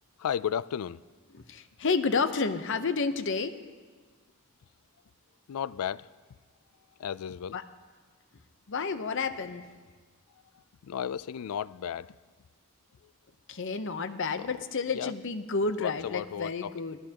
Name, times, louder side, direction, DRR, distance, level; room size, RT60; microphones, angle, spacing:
voice 1, 0.2-1.0 5.5-6.1 7.0-7.6 10.5-12.2 13.0-13.1 14.4-14.6 14.9-15.1 15.8-16.8, left 8 dB, 75° left, 0.3 m, -34 dB
voice 2, 1.3-3.5 7.5-7.6 8.7-9.7 13.5-17.0, left 4 dB, 60° left, 0.8 m, -30 dB
25.0 x 17.0 x 2.9 m
head